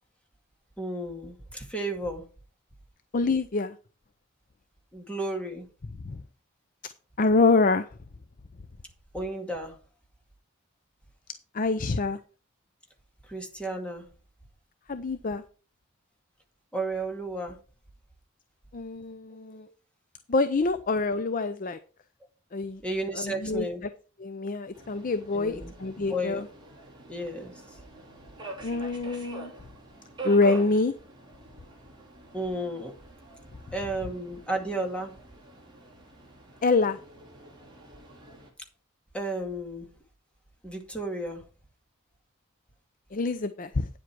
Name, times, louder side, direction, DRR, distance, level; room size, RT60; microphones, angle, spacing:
voice 1, 0.8-2.2 4.9-5.7 9.1-9.8 13.3-14.0 16.7-17.6 19.3-19.7 22.8-23.8 25.3-25.7 26.1-26.5 27.1-27.5 32.3-32.9 33.7-35.1 39.1-39.9 40.6-41.4, right 1 dB, 5° left, 2.1 m, -33 dB
voice 2, 3.1-3.8 6.0-6.2 7.2-7.9 11.5-12.2 14.9-15.4 18.7-19.7 20.3-21.8 22.5-22.8 23.2-23.7 24.2-26.5 28.6-29.5 30.2-30.9 36.6-37.0 43.1-43.9, left 3 dB, 40° left, 0.5 m, -26 dB
Subway metro underground, 24.7-38.5, right 3 dB, 20° right, 3.2 m, -45 dB
9.6 x 7.7 x 4.7 m
head